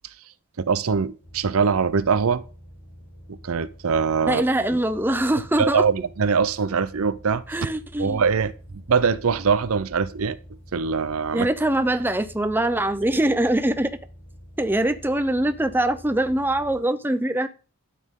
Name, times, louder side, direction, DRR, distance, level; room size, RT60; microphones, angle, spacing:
voice 1, 0.6-2.4 3.3-4.4 5.6-7.7 8.0-8.5 8.9-10.4 10.7-11.5, right 5 dB, 70° right, 0.6 m, -22 dB
sound 1, 1.2-16.8, equal, 60° left, 3.5 m, -46 dB
voice 2, 4.2-5.8 7.5-8.2 11.3-13.9 14.6-17.5, right 1 dB, 10° right, 0.5 m, -23 dB
12.5 x 8.4 x 3.7 m
head